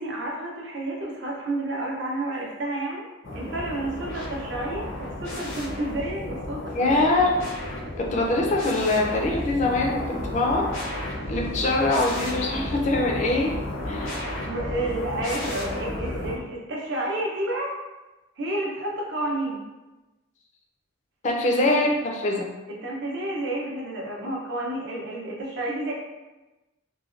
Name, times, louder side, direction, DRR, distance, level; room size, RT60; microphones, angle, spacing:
voice 1, 0.0-3.1 3.3-7.0 14.3-17.7 18.4-19.6 22.7-25.9, right 1 dB, 55° right, -3 dB, 0.6 m, -30 dB
sound 1, 3.2-16.4, left 1 dB, 75° left, 0.6 m, -33 dB
voice 2, 6.7-7.3 8.0-10.0 10.2-10.6 11.3-13.5 13.9-14.1 21.2-22.5, left 2 dB, 35° left, 0 dB, 0.4 m, -23 dB
3.1 x 2.2 x 2.4 m, 1.1 s
head